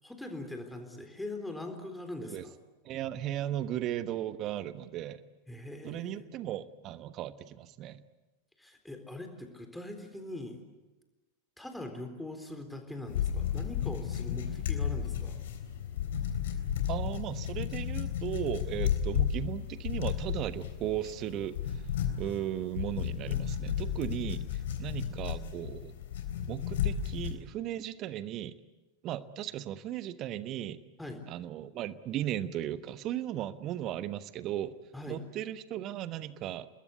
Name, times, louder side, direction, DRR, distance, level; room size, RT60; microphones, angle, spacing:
voice 1, 0.0-2.5 5.5-6.3 8.6-10.6 11.6-15.4 31.0-31.2 34.9-35.2, left 2 dB, 5° left, 5 dB, 3.9 m, -42 dB
voice 2, 2.8-5.2 5.8-8.0 16.9-21.6 22.2-25.9 26.5-28.6 29.0-30.8 31.3-34.8 35.1-36.7, right 12 dB, 35° right, 14 dB, 1.2 m, -36 dB
sound 1, 13.1-27.4, left 9 dB, 55° left, 3.7 m, -33 dB
29.5 x 21.0 x 8.5 m, 1.1 s
figure-of-eight pair, 90°, 0 cm